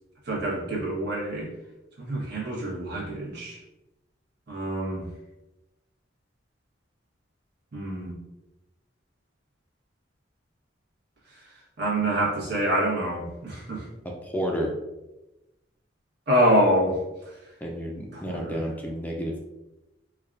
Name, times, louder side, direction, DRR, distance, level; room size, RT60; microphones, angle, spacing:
voice 1, 0.3-1.5 2.0-3.6 4.5-5.1 7.7-8.1 11.8-13.9 16.3-17.0 18.2-18.5, equal, 60° right, -4 dB, 1.2 m, -26 dB
voice 2, 14.0-14.7 17.6-19.5, equal, 10° left, -1 dB, 0.4 m, -31 dB
4.6 x 2.3 x 2.5 m, 0.99 s
head